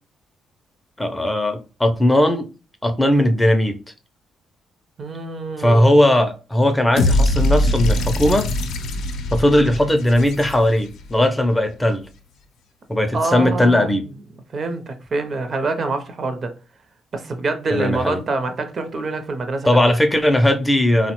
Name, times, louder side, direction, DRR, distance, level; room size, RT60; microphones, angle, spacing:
voice 1, 1.0-2.5 2.8-3.8 5.6-8.5 9.3-12.1 12.9-14.0 17.7-18.2 19.6-21.1, left 1 dB, 10° left, 0.4 m, -18 dB
voice 2, 5.0-6.0 13.1-13.9 14.5-16.5 17.1-19.9, right 3 dB, 45° right, 0.5 m, -25 dB
sound 1, 7.0-11.1, left 1 dB, 80° left, 0.5 m, -21 dB
3.4 x 2.1 x 2.9 m
cardioid pair, 90°, 0 cm